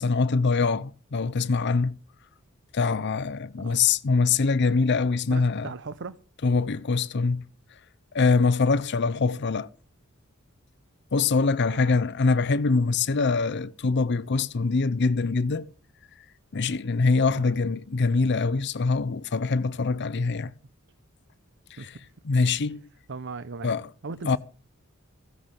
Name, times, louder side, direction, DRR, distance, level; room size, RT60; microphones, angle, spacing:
voice 1, 0.0-1.9 2.7-5.7 6.4-7.4 8.1-9.7 11.1-15.6 16.5-20.5 21.8-21.9 22.2-22.8 23.6-23.8 24.3-24.4, left 4 dB, 55° left, 0.6 m, -24 dB
voice 2, 5.3-6.2 11.7-12.0 17.3-17.6 21.8-22.1 23.1-23.8 24.0-24.4, right 4 dB, 60° right, 0.6 m, -38 dB
15.5 x 11.0 x 5.2 m
head